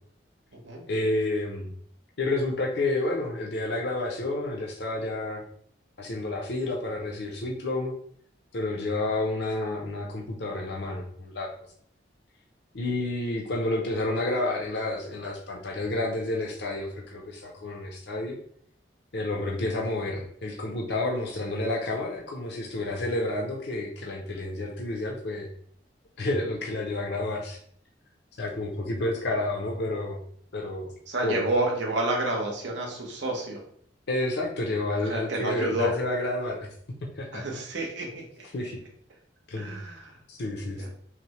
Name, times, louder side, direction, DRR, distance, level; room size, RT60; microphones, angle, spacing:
voice 1, 0.9-1.7 2.2-5.4 6.0-7.9 8.5-11.5 12.7-18.4 19.1-25.5 26.2-27.6 28.4-30.2 30.5-30.9 31.2-31.4 34.1-36.7 37.1-37.4 38.5-38.8 39.5-39.8 40.3-40.9, left 2 dB, 65° left, -1 dB, 0.6 m, -30 dB
voice 2, 31.1-33.6 35.0-35.9 37.3-38.4 39.5-40.1 40.8-40.9, right 2 dB, 80° right, 0 dB, 0.9 m, -29 dB
5.7 x 2.1 x 3.1 m, 0.62 s
head